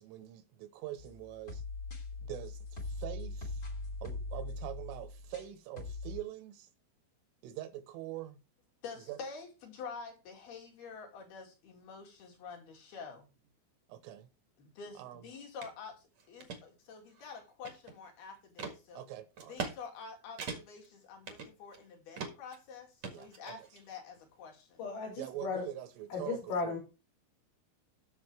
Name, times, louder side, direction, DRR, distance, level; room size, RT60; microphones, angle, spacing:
voice 1, 0.0-1.6 2.2-3.6 4.0-6.7 7.4-8.4 9.1-9.2 13.9-14.3 15.0-15.2 18.9-19.6 23.1-23.6 25.2-26.4 26.6-26.8, right 12 dB, 80° right, 3.4 m, -44 dB
sound 1, 1.0-5.5 5.8-6.2, left 2 dB, 30° left, 1.7 m, -41 dB
voice 2, 8.8-13.3 14.6-19.1 19.5-24.8, left 5 dB, 55° left, 3.9 m, -48 dB
sound 2, 15.6-15.7 16.2-16.6 17.1-18.1 18.6-18.8 19.4-19.8 20.0-20.1 20.4-20.9 21.3-21.8 22.2-22.6 23.0-23.8, right 5 dB, 65° right, 1.7 m, -41 dB
voice 3, 24.8-25.7 26.1-26.8, left 4 dB, 85° left, 8.4 m, -35 dB
16.0 x 6.4 x 3.3 m
omnidirectional pair, 5.9 m